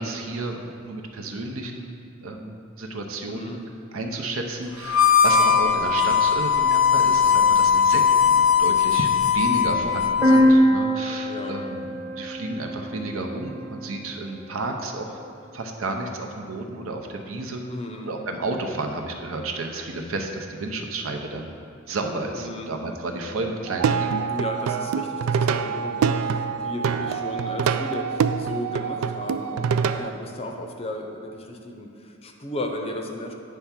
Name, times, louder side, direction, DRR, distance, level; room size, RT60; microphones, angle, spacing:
voice 1, 0.0-3.6 3.9-15.2 15.5-17.6 18.0-21.6 21.9-24.2, right 2 dB, 75° right, 3 dB, 0.7 m, -32 dB
voice 2, 3.3-3.6 8.9-9.0 11.2-11.5 17.7-18.1 22.4-22.7 24.3-33.3, left 1 dB, 30° left, 3 dB, 0.6 m, -35 dB
Harmonica, 4.8-10.5, left 7 dB, 70° left, 0.6 m, -19 dB
sound 1, 10.2-14.0, equal, 15° right, 1.0 m, -22 dB
Plucked string instrument, 23.7-30.1, right 6 dB, 90° right, 0.3 m, -25 dB
9.3 x 3.5 x 5.8 m, 2.4 s
head